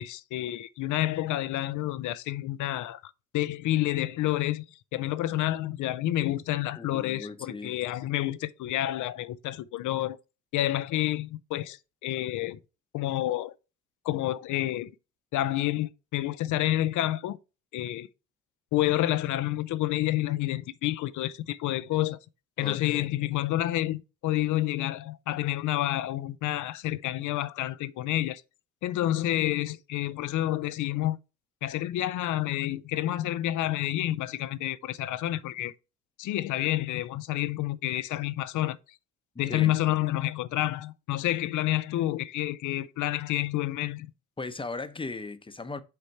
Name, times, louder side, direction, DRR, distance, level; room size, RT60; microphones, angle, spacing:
voice 1, 0.0-3.0 3.3-4.6 4.9-10.2 10.5-12.6 12.9-13.5 14.0-14.9 15.3-17.4 17.7-18.1 18.7-22.2 22.6-28.4 28.8-31.2 31.6-35.7 36.2-38.8 39.4-44.1, left 14 dB, 80° left, 0.6 m, -29 dB
voice 2, 6.8-7.8 22.6-23.1 39.5-39.8 44.4-45.8, left 3 dB, 15° left, 0.8 m, -37 dB
6.7 x 4.2 x 4.6 m
cardioid pair, 90°, 30 cm